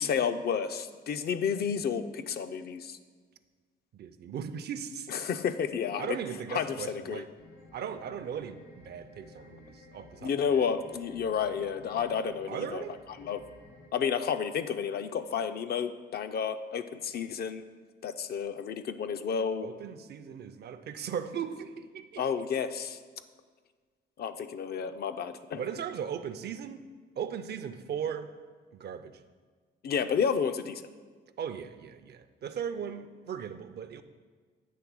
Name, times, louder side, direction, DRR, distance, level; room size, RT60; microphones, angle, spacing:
voice 1, 0.0-3.0 5.1-6.2 6.5-7.2 10.2-12.8 13.2-13.4 13.9-17.6 18.0-19.7 22.2-23.0 24.2-25.6 29.8-30.8, left 7 dB, 55° left, 9 dB, 0.5 m, -31 dB
voice 2, 3.9-5.1 6.0-7.3 7.7-10.7 12.5-13.0 19.6-22.3 25.6-26.8 27.2-28.3 28.7-29.2 31.4-34.0, right 8 dB, 55° right, 11 dB, 0.5 m, -38 dB
sound 1, 7.4-13.9, left 2 dB, 75° left, 1.8 m, -54 dB
8.4 x 3.2 x 6.1 m, 1.5 s
cardioid pair, 90°, 20 cm